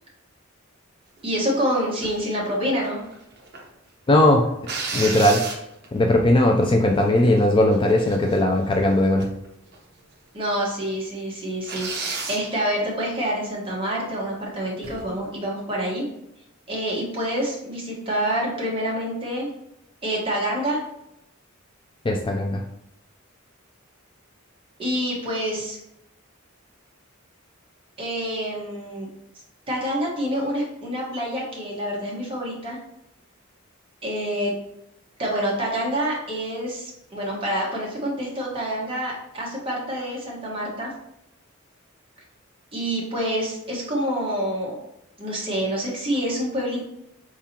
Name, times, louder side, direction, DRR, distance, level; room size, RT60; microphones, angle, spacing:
voice 1, 1.2-3.0 10.3-11.9 12.3-16.0 16.7-19.5 20.0-20.8 24.8-25.8 28.0-29.1 29.7-32.8 34.0-34.5 35.2-40.9 42.7-44.8 45.2-46.8, equal, 25° right, -4 dB, 1.4 m, -27 dB
sound 1, 2.0-2.2 2.8-3.7 4.6-6.0 6.6-6.7 7.0-7.4 7.7-8.6 9.2-9.5 9.7-9.8 10.4-10.5 10.8-10.9 11.6-12.5 14.8-15.1, right 4 dB, 50° right, 0.9 m, -32 dB
voice 2, 4.1-4.5 4.9-5.4 5.9-9.3 22.0-22.6, left 1 dB, 25° left, 2 dB, 0.4 m, -18 dB
4.7 x 3.6 x 2.8 m, 0.80 s
head